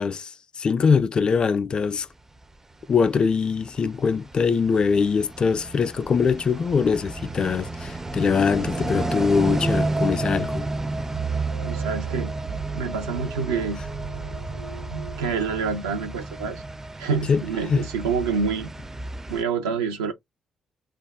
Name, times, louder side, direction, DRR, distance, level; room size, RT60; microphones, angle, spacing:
voice 1, 0.0-2.1 2.9-10.7 17.3-17.4 17.7-17.9, left 5 dB, 45° left, 0.4 m, -22 dB
sound 1, 2.8-19.4, right 2 dB, 20° right, 0.4 m, -32 dB
sound 2, 11.1-16.1, right 6 dB, 65° right, 1.3 m, -34 dB
voice 2, 11.6-12.3 12.7-13.8 14.9-16.6 17.0-18.7 19.3-20.1, right 5 dB, 80° right, 0.6 m, -27 dB
2.4 x 2.2 x 3.5 m
hypercardioid pair, 40°, 2 cm